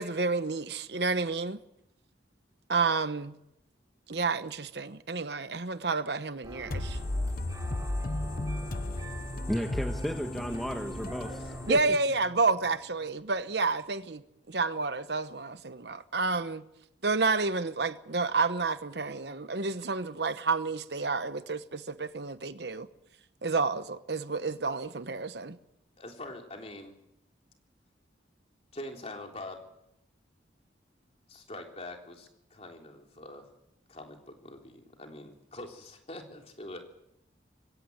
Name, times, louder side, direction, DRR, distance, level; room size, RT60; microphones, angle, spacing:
voice 1, 0.0-1.6 2.7-3.3 4.1-7.0 11.7-14.2 14.5-16.6 17.0-22.9 23.4-25.6, right 4 dB, 65° right, 1.0 m, -30 dB
sound 1, 6.4-11.7, right 1 dB, 20° right, 3.5 m, -43 dB
sound 2, 6.7-12.3, left 2 dB, 50° left, 0.9 m, -35 dB
voice 2, 9.5-12.0, equal, ahead, 1.4 m, -34 dB
voice 3, 11.2-11.6 26.0-26.9 28.7-29.6 31.3-33.5 33.9-36.8, left 1 dB, 35° left, 3.6 m, -44 dB
23.0 x 17.0 x 8.1 m
head